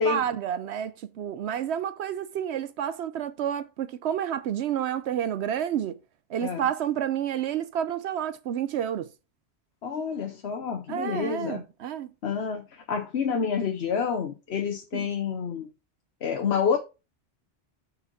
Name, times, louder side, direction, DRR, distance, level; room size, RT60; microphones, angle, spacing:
voice 1, 0.0-6.0 6.3-9.1 10.9-12.1 14.9-15.1, right 9 dB, 70° right, 0.8 m, -30 dB
voice 2, 9.8-11.6 12.2-15.7 16.2-16.8, left 6 dB, 65° left, 1.1 m, -28 dB
6.5 x 4.6 x 6.0 m
omnidirectional pair, 1.2 m